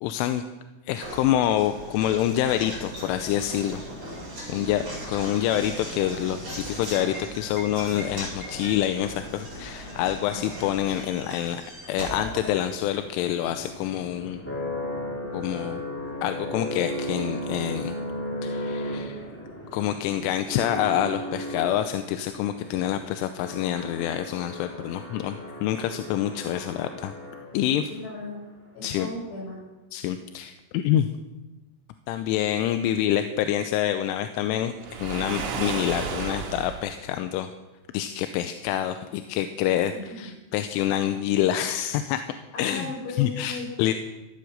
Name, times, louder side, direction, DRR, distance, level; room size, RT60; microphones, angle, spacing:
voice 1, 0.0-0.4 0.9-3.8 4.5-4.8 5.1-11.6 11.9-14.4 15.3-15.8 16.2-17.9 18.4-19.3 19.7-27.1 27.5-27.9 28.8-29.1 29.9-31.1 32.1-34.7 35.0-37.5 37.9-42.2 42.6-42.9 43.2-43.9, left 11 dB, 80° left, 9 dB, 3.1 m, -26 dB
Knock, 1.0-13.2, equal, 35° right, 8.9 m, -38 dB
sound 1, 11.6-27.9, left 1 dB, 5° left, 2.4 m, -36 dB
voice 2, 27.9-28.4 28.7-29.6 39.9-40.3 42.5-43.7, left 2 dB, 55° left, -2 dB, 8.5 m, -36 dB
Waves surf, 34.8-36.9, right 6 dB, 80° right, 4.7 m, -32 dB
15.5 x 13.0 x 6.5 m, 1.1 s
omnidirectional pair, 5.8 m